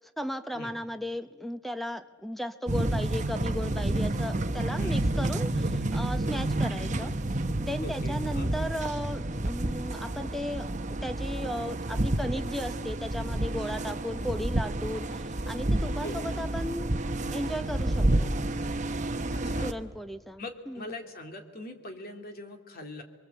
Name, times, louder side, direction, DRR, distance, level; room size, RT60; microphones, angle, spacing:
voice 1, 0.2-7.1 7.6-16.9 17.3-18.3 19.6-20.9, equal, ahead, 9 dB, 0.9 m, -36 dB
sound 1, 2.7-19.7, right 1 dB, 35° right, 1.0 m, -30 dB
voice 2, 7.8-8.5 16.0-16.3 19.3-19.7 20.4-23.0, left 1 dB, 45° left, 4 dB, 2.8 m, -41 dB
29.0 x 23.5 x 8.1 m, 1.4 s
head